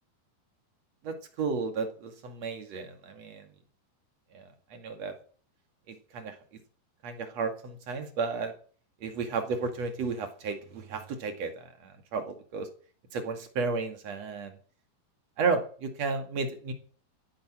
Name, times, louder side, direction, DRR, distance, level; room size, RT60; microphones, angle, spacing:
voice 1, 1.0-3.5 4.3-5.2 5.9-6.4 7.0-8.5 9.0-12.7 13.1-14.6 15.4-16.7, right 4 dB, 45° right, 6 dB, 2.6 m, -33 dB
14.0 x 10.5 x 7.5 m, 0.43 s
omnidirectional pair, 5.1 m